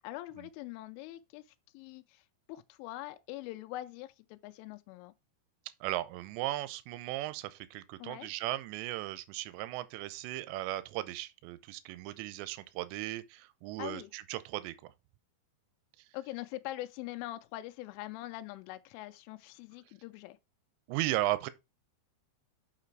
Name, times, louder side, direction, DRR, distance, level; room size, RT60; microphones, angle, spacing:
voice 1, 0.0-5.1 8.0-8.3 13.8-14.1 16.1-20.4, left 16 dB, 90° left, 3.1 m, -43 dB
voice 2, 5.8-14.9 20.9-21.5, right 16 dB, 80° right, 2.7 m, -36 dB
6.6 x 5.8 x 4.6 m
omnidirectional pair, 5.5 m